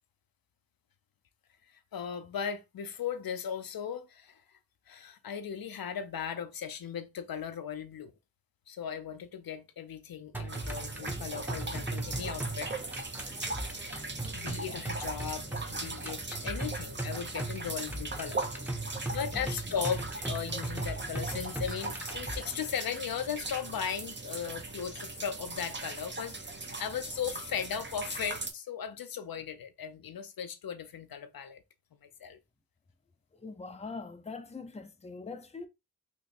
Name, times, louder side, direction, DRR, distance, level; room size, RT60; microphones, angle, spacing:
voice 1, 1.9-4.4 4.9-8.1 8.7-12.7 14.3-18.4 19.0-31.6 31.9-32.4, left 8 dB, 75° left, 0.6 m, -37 dB
sound 1, 10.3-22.3, right 2 dB, 5° right, 0.9 m, -38 dB
sound 2, 10.5-28.5, right 3 dB, 30° right, 0.8 m, -39 dB
voice 2, 13.2-14.5 18.9-19.5 33.4-35.7, left 4 dB, 20° left, 0.6 m, -45 dB
3.1 x 2.2 x 4.2 m
cardioid pair, 45°, 35 cm